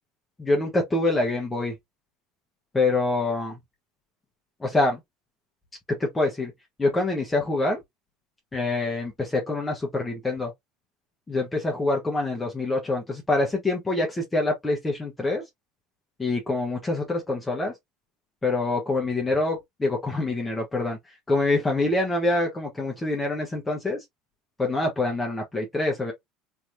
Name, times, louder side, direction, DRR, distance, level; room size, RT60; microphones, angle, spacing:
voice 1, 0.4-1.7 2.7-3.6 4.6-5.0 6.0-6.5 6.8-7.8 8.5-10.5 11.3-15.4 16.2-17.7 18.4-24.0 24.6-26.1, left 2 dB, 15° left, 1.0 m, -25 dB
3.4 x 2.9 x 2.6 m
supercardioid pair, 100°, 0 cm